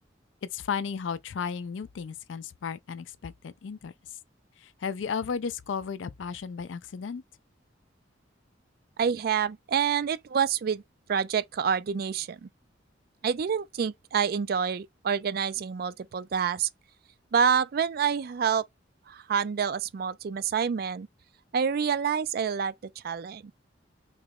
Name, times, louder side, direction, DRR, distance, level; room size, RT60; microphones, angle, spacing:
voice 1, 0.4-3.9 4.6-7.2, left 6 dB, 80° left, 0.4 m, -34 dB
voice 2, 9.0-10.8 11.1-12.5 13.2-16.7 17.3-18.6 19.1-21.1 21.5-23.5, right 7 dB, 55° right, 0.3 m, -27 dB
3.0 x 2.9 x 3.6 m
head